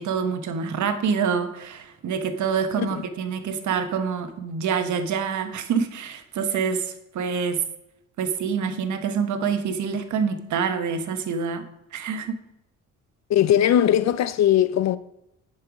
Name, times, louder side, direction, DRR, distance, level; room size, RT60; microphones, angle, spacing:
voice 1, 0.0-7.6 8.2-11.7 11.9-12.4, right 6 dB, 70° right, 1.2 m, -26 dB
voice 2, 13.3-15.0, left 11 dB, 60° left, 0.6 m, -20 dB
10.0 x 5.6 x 5.1 m
cardioid pair, 90°, 30 cm